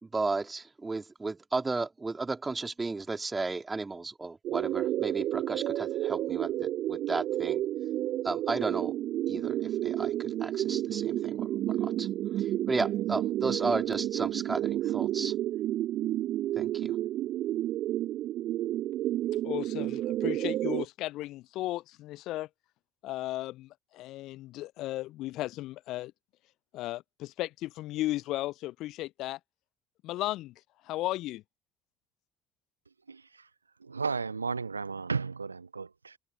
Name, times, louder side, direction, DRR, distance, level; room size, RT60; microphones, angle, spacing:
voice 1, 0.0-7.6 8.2-9.0 9.3-12.1 12.3-15.3 16.6-17.0, right 3 dB, 20° right, 3.9 m, -34 dB
sound 1, 4.4-20.8, right 13 dB, 50° right, 1.3 m, -31 dB
voice 2, 19.4-22.5 23.0-26.1 26.7-29.4 30.0-30.5 30.8-31.4, left 16 dB, 55° left, 0.8 m, -35 dB
voice 3, 33.1-33.5 33.8-36.2, right 4 dB, 85° right, 0.6 m, -34 dB
figure-of-eight pair, 60°, 0 cm